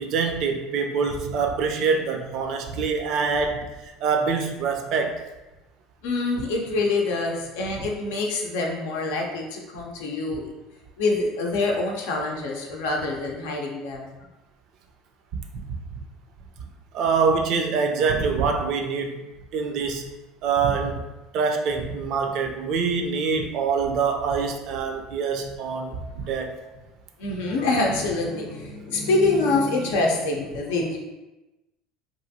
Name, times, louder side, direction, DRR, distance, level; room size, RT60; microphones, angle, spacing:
voice 1, 0.0-5.2 15.5-15.6 16.9-19.2 19.5-20.1 20.4-21.1 21.3-26.6, right 5 dB, 60° right, 4 dB, 0.4 m, -25 dB
voice 2, 6.0-10.5 11.0-14.2 27.2-31.0, left 3 dB, 85° left, 0 dB, 0.5 m, -25 dB
3.0 x 2.5 x 2.6 m, 1.0 s
supercardioid pair, 105°, 0 cm